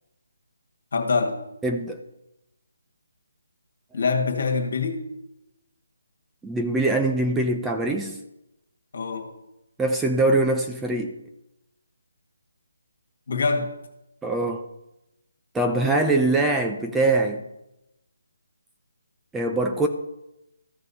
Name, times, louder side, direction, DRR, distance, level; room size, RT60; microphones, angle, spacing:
voice 1, 0.9-1.4 3.9-5.1 8.9-9.3 13.3-13.7, left 4 dB, 60° left, 4 dB, 1.7 m, -24 dB
voice 2, 1.6-2.0 6.4-8.2 9.8-11.2 14.2-14.7 15.5-17.4 19.3-19.9, right 2 dB, 5° right, 3 dB, 0.6 m, -23 dB
14.5 x 5.2 x 4.2 m, 0.88 s
hypercardioid pair, 160°, 0 cm